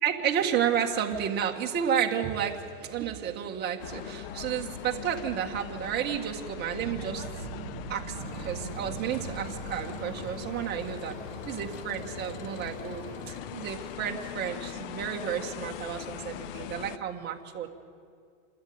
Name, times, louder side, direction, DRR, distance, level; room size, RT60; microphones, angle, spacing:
voice 1, 0.0-7.5 7.9-11.2 11.5-17.7, right 9 dB, 25° right, 1 dB, 1.8 m, -31 dB
sound 1, 3.8-17.0, left 11 dB, 45° left, 0.6 m, -41 dB
sound 2, 6.8-13.0, right 11 dB, 75° right, 1.5 m, -44 dB
sound 3, 8.2-13.4, equal, 15° left, 3.9 m, -45 dB
27.5 x 13.0 x 9.5 m, 2.3 s
supercardioid pair, 150°, 40 cm